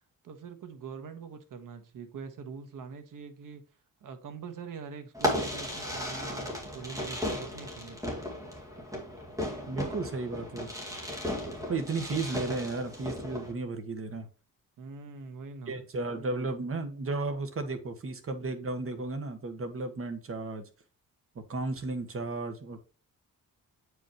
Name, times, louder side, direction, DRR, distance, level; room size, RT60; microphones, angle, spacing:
voice 1, 0.2-3.6 4.0-8.2 14.8-15.7, right 5 dB, 65° right, 1.4 m, -44 dB
Fireworks, 5.1-13.5, left 1 dB, 10° right, 2.1 m, -35 dB
voice 2, 9.7-10.7 11.7-14.3 15.7-20.7 21.3-22.8, right 3 dB, 40° right, 1.4 m, -34 dB
8.2 x 5.1 x 3.0 m
wide cardioid pair, 165°, 34 cm